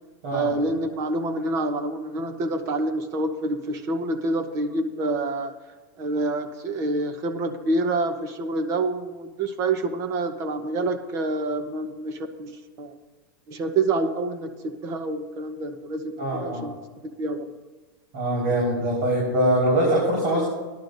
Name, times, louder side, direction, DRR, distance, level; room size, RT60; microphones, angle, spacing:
voice 1, 0.3-5.5 6.0-13.0 13.5-14.5 14.8-16.7 17.2-17.5, right 2 dB, 30° right, 8 dB, 1.0 m, -27 dB
voice 2, 16.2-16.7 18.1-20.4, right 1 dB, 60° right, -6 dB, 4.7 m, -23 dB
18.5 x 11.5 x 2.7 m, 1.3 s
supercardioid pair, 160°, 10 cm